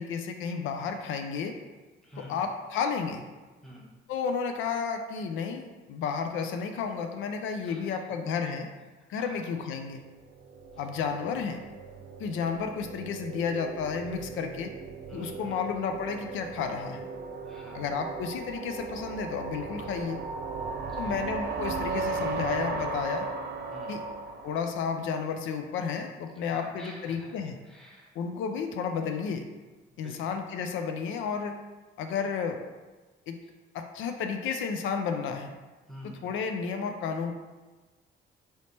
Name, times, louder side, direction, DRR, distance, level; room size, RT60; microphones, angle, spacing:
voice 1, 0.0-1.6 2.2-3.2 4.1-8.7 9.1-10.0 10.8-11.6 12.2-14.7 15.1-17.0 17.7-20.2 21.0-23.3 23.9-24.0 24.4-27.6 28.2-29.4 30.0-31.6 32.0-32.6 33.3-33.4 33.7-35.5 36.2-37.3, left 6 dB, 80° left, 5 dB, 0.4 m, -32 dB
voice 2, 2.0-2.4 3.6-3.9 7.7-8.1 9.0-9.4 10.7-10.8 15.1-15.6 17.4-17.8 20.9-21.2 23.7-24.0 26.3-28.2 30.0-30.4 35.9-36.4, equal, ahead, -4 dB, 1.1 m, -49 dB
sound 1, 10.0-25.2, right 4 dB, 55° right, 0.5 m, -37 dB
3.3 x 3.1 x 4.1 m, 1.2 s
cardioid pair, 90°, 20 cm